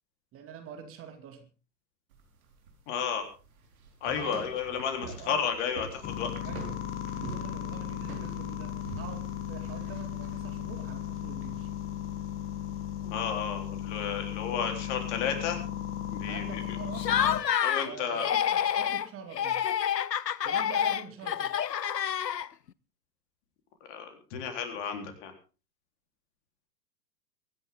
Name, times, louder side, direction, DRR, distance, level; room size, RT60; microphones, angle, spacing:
voice 1, 0.3-1.5 4.0-4.5 5.0-5.5 6.4-6.8 7.1-11.7 16.3-17.2 17.8-19.7 20.4-21.6, right 7 dB, 25° right, 6 dB, 2.4 m, -45 dB
sound 1, 2.1-11.0, right 4 dB, 60° right, 4.6 m, -46 dB
voice 2, 2.9-3.2 4.0-6.3 13.0-15.6 16.1-16.6 17.2-17.3 17.6-18.3 23.9-25.3, left 7 dB, 45° left, 5 dB, 3.8 m, -32 dB
sound 2, 6.0-17.4, left 11 dB, 25° left, 1.5 m, -36 dB
Laughter, 17.0-17.9 18.2-19.1 19.4-22.7, left 9 dB, 85° left, 0.7 m, -28 dB
23.5 x 11.0 x 3.7 m, 0.35 s
figure-of-eight pair, 105°, 48 cm